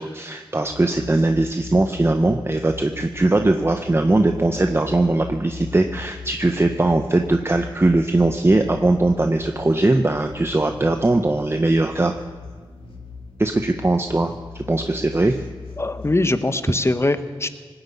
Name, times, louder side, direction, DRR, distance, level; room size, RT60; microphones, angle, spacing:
voice 1, 0.0-12.1 13.4-15.5, right 2 dB, 25° right, 6 dB, 0.7 m, -20 dB
sound 1, 0.6-16.3, left 5 dB, 70° left, 2.2 m, -38 dB
voice 2, 15.8-17.5, left 2 dB, 30° left, 10 dB, 0.9 m, -22 dB
19.5 x 8.0 x 8.5 m, 1.5 s
wide cardioid pair, 60°, 9 cm